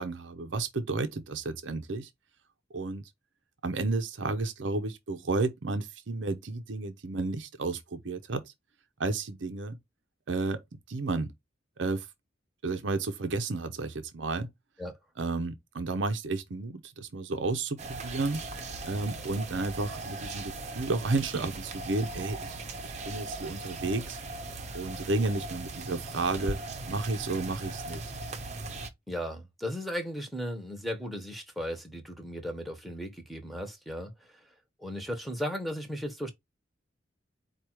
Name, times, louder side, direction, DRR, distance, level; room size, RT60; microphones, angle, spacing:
voice 1, 0.0-2.1 2.7-3.0 3.6-8.5 9.0-9.8 10.3-10.6 10.9-11.3 11.8-12.1 12.6-14.5 15.2-18.4 18.9-24.2 24.7-26.6 26.9-28.1, right 3 dB, 85° right, 0.7 m, -32 dB
sound 1, 17.8-28.9, right 2 dB, 40° right, 0.8 m, -39 dB
voice 2, 29.1-34.5 34.8-36.3, equal, ahead, 1.0 m, -36 dB
4.8 x 2.4 x 4.4 m
head